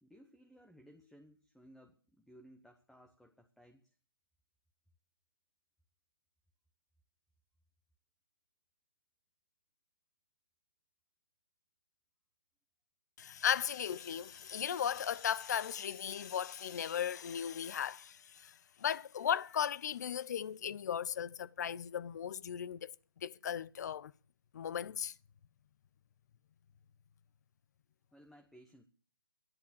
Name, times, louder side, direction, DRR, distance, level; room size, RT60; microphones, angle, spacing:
voice 1, 0.0-3.9 28.1-28.9, equal, ahead, 0.9 m, -60 dB
voice 2, 13.2-18.5 18.8-22.9 23.2-24.1 24.5-25.1, left 8 dB, 50° left, 0.7 m, -36 dB
sound 1, 13.7-19.4, left 5 dB, 75° left, 1.3 m, -60 dB
13.0 x 11.0 x 7.2 m
hypercardioid pair, 145°, 12 cm